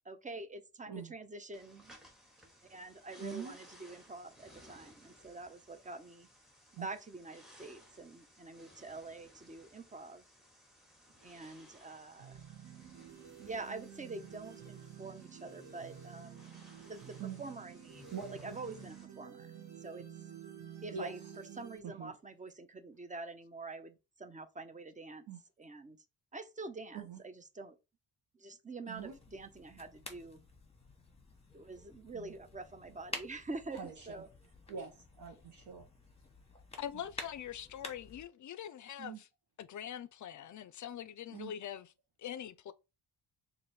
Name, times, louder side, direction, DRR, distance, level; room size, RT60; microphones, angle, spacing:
voice 1, 0.1-1.9 2.7-6.3 6.7-10.2 11.2-12.4 13.4-16.5 16.8-18.1 18.4-20.0 20.8-21.2 21.6-25.3 25.6-26.0 26.3-27.8 28.4-30.4 31.5-34.3, right 3 dB, 20° right, 0.5 m, -46 dB
sound 1, 1.5-19.1, left 1 dB, ahead, 0.9 m, -60 dB
voice 2, 3.2-3.5 6.8-6.9 17.2-17.4 18.1-18.6 20.9-21.4 21.8-22.2 25.3-25.4 26.9-27.2 28.8-29.2 32.1-32.3 33.7-34.1 34.7-35.9 39.0-39.2 41.3-41.5, right 6 dB, 75° right, 1.0 m, -44 dB
sound 2, 12.2-21.8, right 9 dB, 45° right, 1.5 m, -51 dB
sound 3, 28.9-38.2, left 2 dB, 15° left, 1.0 m, -50 dB
voice 3, 36.8-39.3 39.6-41.9 42.2-42.7, left 10 dB, 50° left, 0.4 m, -43 dB
3.1 x 2.6 x 4.1 m
cardioid pair, 95°, 40 cm